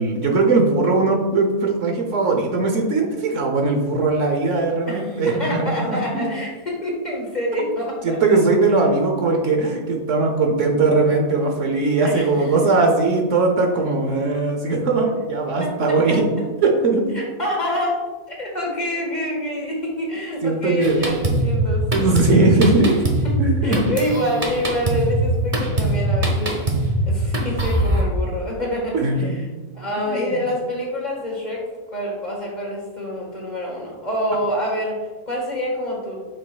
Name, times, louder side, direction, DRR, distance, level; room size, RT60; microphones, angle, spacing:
voice 1, 0.0-6.3 8.0-16.2 16.6-17.1 20.4-21.1 21.9-23.0 23.4-23.8 28.9-29.3 30.1-30.3, right 3 dB, 60° right, 2 dB, 1.1 m, -19 dB
voice 2, 4.9-8.4 12.0-12.5 15.6-16.4 17.1-22.4 23.2-23.4 23.6-29.5 29.7-36.1, equal, 30° left, -2 dB, 1.6 m, -27 dB
Drum kit, 20.8-28.0, right 1 dB, 35° right, 1.2 m, -22 dB
7.8 x 6.1 x 2.3 m, 1.3 s
omnidirectional pair, 1.5 m